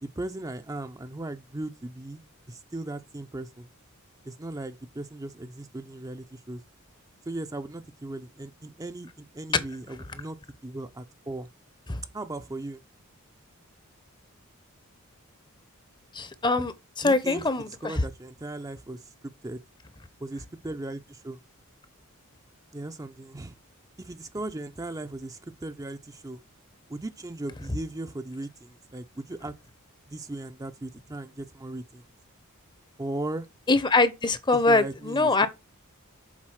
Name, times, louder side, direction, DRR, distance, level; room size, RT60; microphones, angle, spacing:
voice 1, 0.0-2.2 2.5-3.7 4.2-6.6 7.3-10.4 10.6-11.5 12.1-12.8 17.0-19.6 20.2-21.4 22.7-23.6 24.0-26.4 26.9-29.5 30.1-32.0 33.0-33.5 34.5-35.5, right 2 dB, 15° right, 0.5 m, -37 dB
voice 2, 16.1-17.9 33.7-35.5, left 3 dB, 20° left, 0.7 m, -23 dB
7.4 x 4.1 x 6.3 m
head